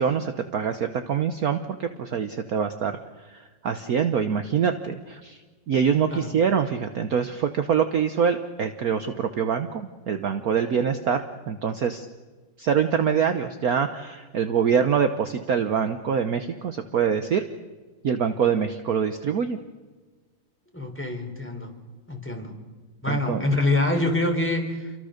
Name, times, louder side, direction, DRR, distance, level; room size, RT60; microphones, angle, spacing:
voice 1, 0.0-2.9 3.2-5.4 5.7-12.1 12.6-17.4 18.0-19.6 23.1-23.4, right 7 dB, 55° right, 8 dB, 1.3 m, -25 dB
voice 2, 20.7-21.7 22.1-22.5 23.0-24.9, left 2 dB, 5° left, 4 dB, 3.8 m, -25 dB
28.5 x 23.5 x 6.6 m, 1.4 s
omnidirectional pair, 2.1 m